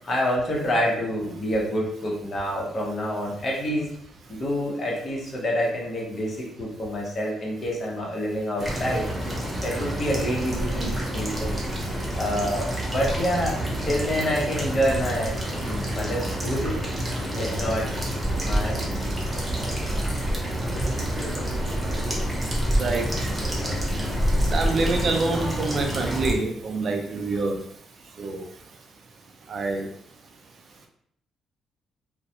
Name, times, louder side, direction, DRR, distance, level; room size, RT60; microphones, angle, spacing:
voice 1, 0.0-3.9 4.3-9.0 9.6-11.7 12.2-13.5 13.9-16.7 17.4-17.9 18.4-18.8, equal, 40° left, -3 dB, 0.9 m, -27 dB
sound 1, 8.6-26.3, equal, 15° right, 0.7 m, -27 dB
voice 2, 22.8-23.3 24.4-27.6 28.2-28.4 29.5-29.9, right 3 dB, 55° right, 3 dB, 0.4 m, -26 dB
2.3 x 2.1 x 2.7 m, 0.66 s
cardioid pair, 90°, 0 cm